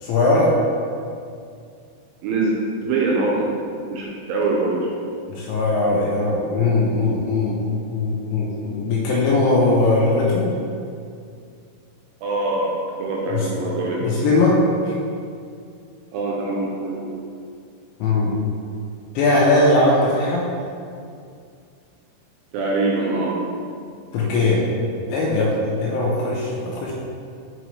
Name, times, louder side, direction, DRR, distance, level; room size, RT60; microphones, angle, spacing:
voice 1, 0.0-0.5 5.3-7.6 7.9-10.5 13.3-13.5 14.0-14.9 18.0-18.3 19.2-20.4 24.1-24.6 25.1-26.9, left 2 dB, 80° left, -4 dB, 2.8 m, -19 dB
voice 2, 2.2-2.5 2.8-3.5 3.9-4.8 12.2-12.7 13.0-14.1 16.1-17.1 22.5-23.4, right 3 dB, 85° right, -3 dB, 2.8 m, -23 dB
6.1 x 6.0 x 3.1 m, 2.3 s
omnidirectional pair, 5.9 m